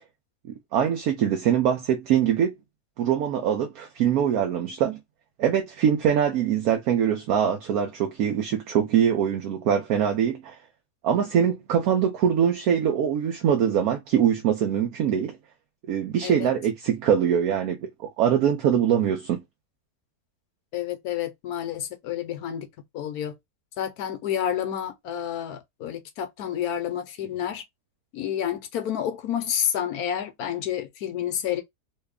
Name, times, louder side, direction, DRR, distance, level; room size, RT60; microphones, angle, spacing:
voice 1, 0.5-2.5 3.0-5.0 5.4-10.6 11.0-15.4 15.9-17.8 18.2-19.4, right 8 dB, 70° right, 1.0 m, -23 dB
voice 2, 20.7-22.7 22.9-23.4 23.8-27.6 28.1-31.6, left 10 dB, 70° left, 1.2 m, -29 dB
3.2 x 2.2 x 3.5 m
omnidirectional pair, 1.8 m